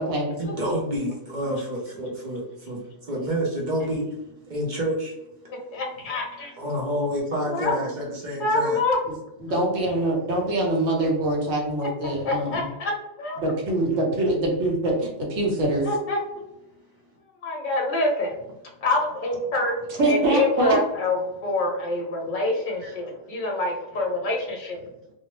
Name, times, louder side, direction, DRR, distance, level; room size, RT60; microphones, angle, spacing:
voice 1, 0.4-2.8 3.1-4.1 4.5-5.1 6.6-8.8 22.8-22.9, equal, 50° right, -2 dB, 0.6 m, -28 dB
voice 2, 5.7-6.5 7.5-7.7 8.4-9.0 12.2-12.9 13.2-13.4 15.8-16.2 17.4-18.3 18.8-19.8 20.1-24.8, left 2 dB, 50° left, 0 dB, 0.8 m, -26 dB
voice 3, 9.4-12.7 13.4-15.9 20.0-20.8, right 1 dB, 75° right, -1 dB, 1.1 m, -24 dB
2.6 x 2.0 x 2.9 m, 0.90 s
omnidirectional pair, 1.3 m